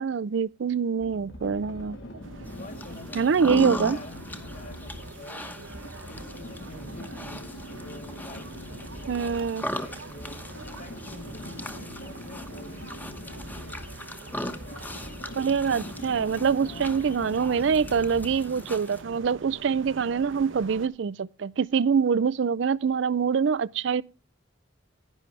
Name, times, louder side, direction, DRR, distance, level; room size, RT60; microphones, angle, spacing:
voice 1, 0.0-2.0 3.2-4.0 9.1-9.6 15.4-24.0, right 6 dB, 70° right, 0.4 m, -25 dB
sound 1, 1.0-18.6, equal, 75° left, 3.1 m, -42 dB
sound 2, 2.2-20.9, right 3 dB, 85° right, 0.9 m, -46 dB
sound 3, 2.5-19.0, left 1 dB, 10° left, 1.0 m, -39 dB
voice 2, 2.6-3.3 3.9-5.7 6.0-13.8 14.2-15.5 16.3-17.2, left 1 dB, 50° left, 2.9 m, -48 dB
10.5 x 10.5 x 3.3 m
head